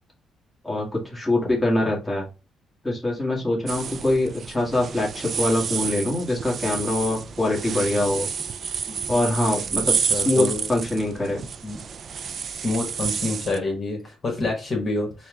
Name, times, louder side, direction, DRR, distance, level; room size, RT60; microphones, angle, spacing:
voice 1, 0.6-2.3 2.8-8.3 9.1-11.4, left 1 dB, 10° left, -3 dB, 1.5 m, -24 dB
sound 1, 3.7-13.6, right 6 dB, 50° right, 0.3 m, -30 dB
voice 2, 10.1-10.7 11.6-11.8 12.6-15.3, left 2 dB, 35° left, 0 dB, 1.4 m, -27 dB
4.3 x 2.2 x 3.5 m, 0.30 s
cardioid pair, 90°, 0 cm